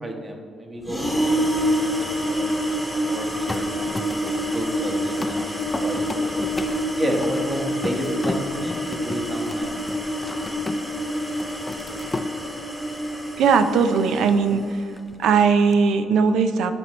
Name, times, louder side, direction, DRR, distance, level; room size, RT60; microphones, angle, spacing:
voice 1, 0.0-3.9 4.5-6.5 7.0-9.7, right 1 dB, 30° right, 1 dB, 1.2 m, -31 dB
sound 1, 0.8-14.8, equal, 5° right, 1.1 m, -27 dB
sound 2, 3.5-11.0 11.3-12.3 15.0-15.7, left 2 dB, 20° left, 0.4 m, -34 dB
voice 2, 13.4-14.8 15.2-16.7, right 5 dB, 80° right, 9 dB, 0.4 m, -19 dB
10.5 x 4.5 x 3.1 m, 2.2 s
cardioid pair, 90°, 0 cm